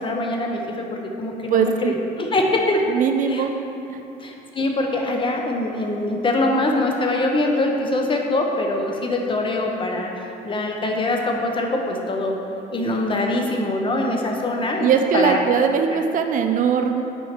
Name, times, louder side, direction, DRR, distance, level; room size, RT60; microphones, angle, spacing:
voice 1, 0.0-2.9 3.3-3.4 4.2-12.4 12.7-15.4, left 2 dB, 30° left, 1 dB, 0.8 m, -23 dB
voice 2, 1.5-2.0 2.9-3.5 3.9-4.0 14.8-17.0, right 6 dB, 50° right, 6 dB, 0.5 m, -20 dB
6.3 x 4.7 x 4.4 m, 2.8 s
cardioid pair, 110°, 17 cm